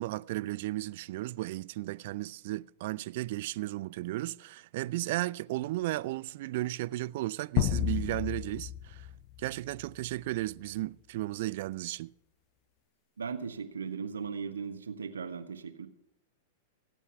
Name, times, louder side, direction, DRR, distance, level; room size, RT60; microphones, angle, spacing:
voice 1, 0.0-9.1 9.4-12.1, right 17 dB, 55° right, 0.4 m, -34 dB
sound 1, 7.6-10.1, left 11 dB, 40° left, 0.7 m, -32 dB
voice 2, 13.2-15.9, right 6 dB, 75° right, 1.3 m, -37 dB
16.5 x 9.1 x 5.8 m
figure-of-eight pair, 95°, 0 cm